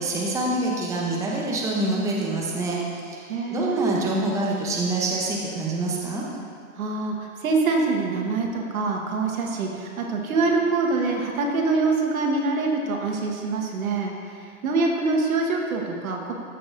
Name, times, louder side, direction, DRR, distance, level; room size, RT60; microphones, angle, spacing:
voice 1, 0.0-6.2, right 2 dB, 10° right, -3 dB, 0.7 m, -26 dB
voice 2, 3.3-3.7 6.7-14.4 14.6-16.3, right 3 dB, 85° right, 1 dB, 1.5 m, -25 dB
14.0 x 6.0 x 2.6 m, 2.3 s
hypercardioid pair, 145°, 41 cm